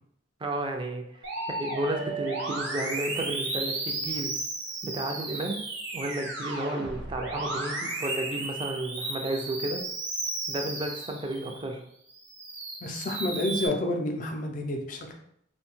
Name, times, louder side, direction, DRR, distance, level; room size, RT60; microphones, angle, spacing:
voice 1, 0.4-4.3 4.8-5.6 5.9-9.9 10.5-11.8, right 1 dB, 25° right, 3 dB, 0.3 m, -32 dB
Musical instrument, 1.2-11.7 12.1-13.7, right 2 dB, 70° right, 0.6 m, -34 dB
voice 2, 12.8-15.2, left 1 dB, 40° left, 3 dB, 0.4 m, -29 dB
2.7 x 2.2 x 3.0 m, 0.70 s
head